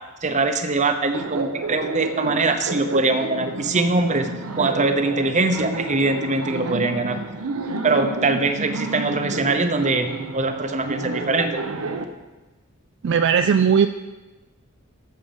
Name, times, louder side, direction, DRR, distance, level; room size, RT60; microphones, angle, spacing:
voice 1, 0.2-7.2 7.8-11.5, right 3 dB, 35° right, 7 dB, 0.8 m, -22 dB
Laughter, 1.1-12.0, right 3 dB, 85° right, 0.9 m, -30 dB
voice 2, 13.0-13.9, right 7 dB, 55° right, 8 dB, 0.3 m, -17 dB
8.8 x 6.5 x 7.2 m, 1.2 s
head